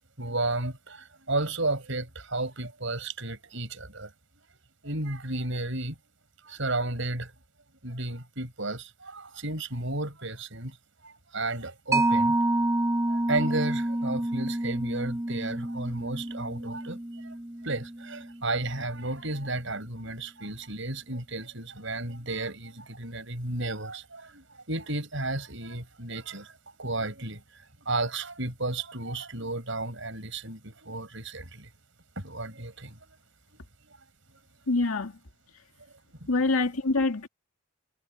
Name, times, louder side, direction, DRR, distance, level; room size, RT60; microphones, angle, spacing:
voice 1, 0.2-4.1 4.8-6.0 6.4-7.3 7.8-10.8 11.0-12.4 13.1-17.3 17.6-26.5 26.8-31.7 32.2-33.0 36.2-36.3, right 2 dB, 60° right, 7.7 m, -33 dB
Mallet percussion, 11.9-19.0, right 1 dB, 15° right, 2.4 m, -29 dB
voice 2, 34.7-35.2 36.3-37.3, left 3 dB, 80° left, 2.1 m, -25 dB
head